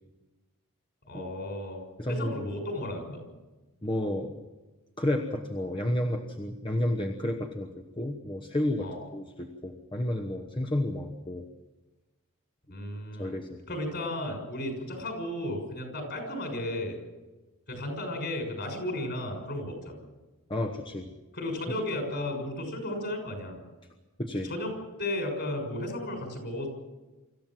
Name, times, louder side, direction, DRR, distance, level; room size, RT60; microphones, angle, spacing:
voice 1, 1.1-1.8 2.1-3.2 8.8-9.0 12.7-13.3 13.7-17.0 17.7-19.9 21.3-23.6 24.4-24.7 25.0-26.7, left 1 dB, 50° left, 3 dB, 6.4 m, -34 dB
voice 2, 2.0-2.5 3.8-4.5 5.0-11.5 13.2-13.6 20.5-21.1 24.2-24.5, left 1 dB, 20° left, 2 dB, 1.1 m, -31 dB
25.5 x 14.5 x 7.6 m, 1.2 s
head